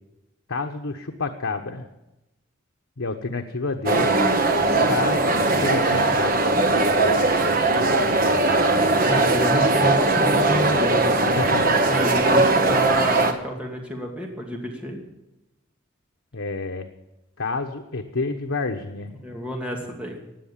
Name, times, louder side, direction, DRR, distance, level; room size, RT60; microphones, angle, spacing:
voice 1, 0.5-1.9 3.0-4.1 4.9-6.3 11.3-11.9 16.3-16.9 17.4-19.2, left 3 dB, 90° left, 3 dB, 1.1 m, -29 dB
sound 1, 3.9-13.3, right 2 dB, 45° right, 1.4 m, -20 dB
voice 2, 9.0-11.1 11.9-15.0 19.2-20.2, right 1 dB, 5° right, 0 dB, 2.6 m, -28 dB
17.0 x 10.5 x 7.4 m, 0.97 s
head